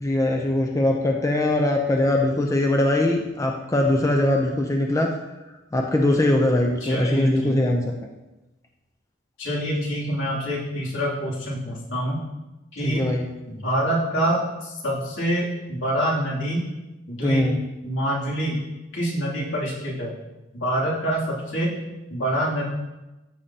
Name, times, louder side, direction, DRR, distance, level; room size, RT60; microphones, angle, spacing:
voice 1, 0.0-5.1 5.7-7.8 12.8-13.3 17.2-17.6, left 1 dB, 15° left, 1 dB, 0.6 m, -21 dB
voice 2, 6.8-7.5 9.4-12.2 12.7-13.1 13.5-16.6 17.1-17.5 17.8-18.6 18.9-20.1 20.5-21.8 22.1-22.7, equal, 75° left, -5 dB, 2.9 m, -26 dB
14.0 x 6.7 x 2.9 m, 1.0 s
head